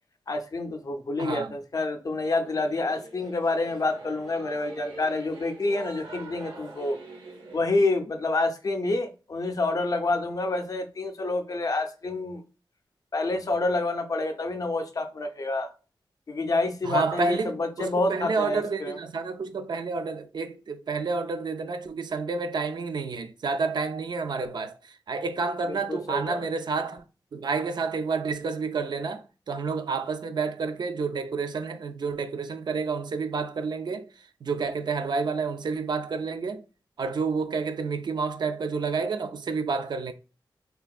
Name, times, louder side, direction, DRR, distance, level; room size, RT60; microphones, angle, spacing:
voice 1, 0.3-7.0 7.5-12.4 13.1-15.7 16.3-19.0 25.6-26.5, left 2 dB, 45° left, 0.5 m, -28 dB
voice 2, 1.2-1.5 16.8-27.0 27.3-36.6 37.0-40.1, right 4 dB, 60° right, 0.4 m, -29 dB
Singing / Musical instrument, 2.2-7.7, right 2 dB, 80° right, 0.9 m, -44 dB
3.4 x 2.5 x 2.3 m
wide cardioid pair, 95°, 8 cm